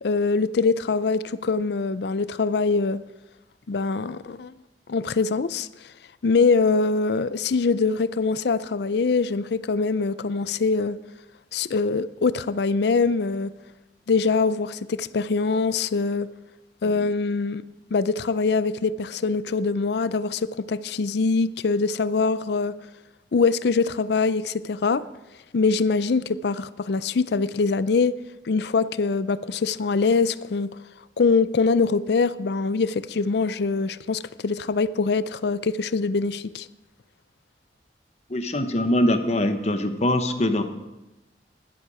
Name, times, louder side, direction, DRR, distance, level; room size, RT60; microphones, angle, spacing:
voice 1, 0.0-3.0 3.7-4.5 4.9-5.7 6.2-11.0 11.5-13.5 14.1-16.3 16.8-17.6 17.9-22.7 23.3-25.0 25.5-28.1 28.5-30.7 31.2-36.7, left 4 dB, 60° left, 16 dB, 0.4 m, -23 dB
voice 2, 38.3-40.6, left 1 dB, 35° left, 8 dB, 0.9 m, -23 dB
11.5 x 11.0 x 4.8 m, 1.0 s
head